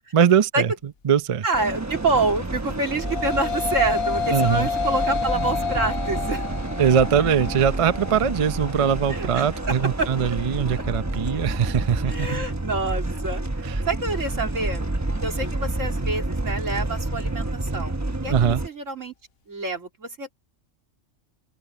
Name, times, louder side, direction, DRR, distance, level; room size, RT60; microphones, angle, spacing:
voice 1, 0.1-0.7 1.0-1.4 4.3-4.7 6.8-12.4 13.6-13.8 18.3-18.6, right 8 dB, 35° right, 0.5 m, -21 dB
voice 2, 1.4-6.5 9.1-10.1 12.1-14.9 15.2-17.9 18.2-18.3 18.6-19.1 19.5-20.3, right 3 dB, 85° right, 3.7 m, -27 dB
sound 1, 1.5-18.7, right 2 dB, 15° right, 0.9 m, -29 dB
sound 2, 2.7-11.9, left 6 dB, 55° left, 1.1 m, -30 dB
open air
omnidirectional pair, 1.3 m